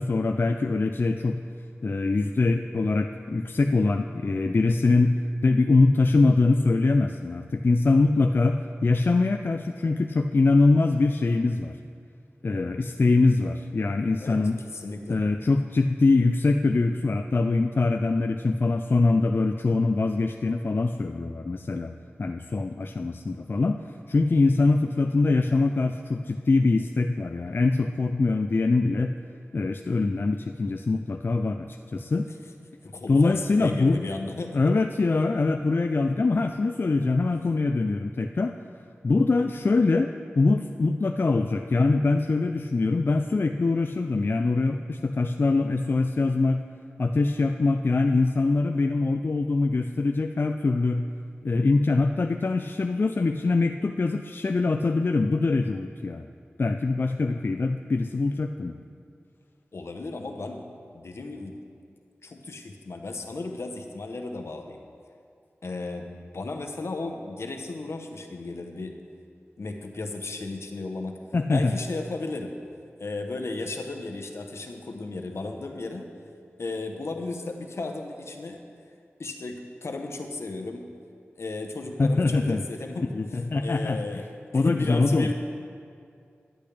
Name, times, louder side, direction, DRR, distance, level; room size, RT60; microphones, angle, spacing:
voice 1, 0.0-1.4 1.8-11.8 12.4-14.6 15.1-21.9 22.2-23.8 24.1-29.1 29.5-32.3 33.1-34.0 34.5-38.5 39.0-46.6 47.0-51.1 51.4-56.3 56.6-58.8 71.3-71.7 82.0-82.6 83.1-84.2 84.5-85.3, left 3 dB, 50° left, 5 dB, 0.3 m, -23 dB
voice 2, 14.7-15.2 32.8-34.6 59.7-60.7 60.9-61.6 62.2-64.8 65.6-66.1 66.3-69.0 69.6-72.6 73.0-76.1 76.6-78.6 79.2-80.9 81.4-83.1 83.6-84.3 84.5-85.3, left 3 dB, 70° left, 4 dB, 0.9 m, -35 dB
10.5 x 10.5 x 3.4 m, 2.4 s
cardioid pair, 45°, 5 cm